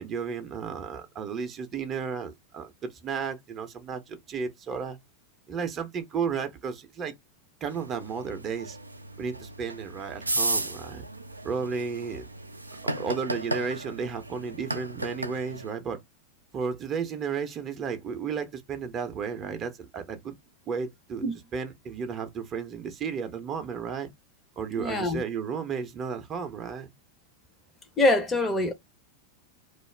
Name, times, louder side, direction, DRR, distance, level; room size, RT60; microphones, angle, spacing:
voice 1, 0.0-5.0 5.5-7.1 7.6-8.8 9.2-11.0 11.4-12.3 13.0-16.0 16.5-20.3 20.7-21.2 21.5-24.1 24.6-26.9, right 6 dB, 30° right, 0.5 m, -33 dB
sound 1, 7.7-15.7, right 2 dB, 85° right, 0.3 m, -34 dB
voice 2, 24.8-25.2 28.0-28.7, left 2 dB, 15° left, 0.6 m, -24 dB
2.3 x 2.0 x 3.2 m
figure-of-eight pair, 90°, 0 cm